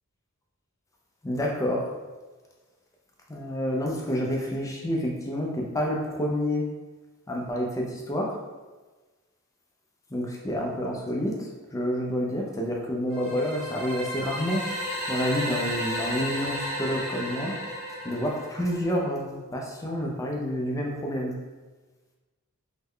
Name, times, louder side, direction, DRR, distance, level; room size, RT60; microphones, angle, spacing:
voice 1, 1.2-1.9 3.3-6.7 7.3-8.4 10.1-14.6 15.1-17.5 18.0-21.4, equal, 15° left, -1 dB, 0.3 m, -29 dB
sound 1, 13.1-19.0, left 1 dB, 15° right, 0.9 m, -33 dB
3.2 x 2.1 x 3.6 m, 1.2 s
head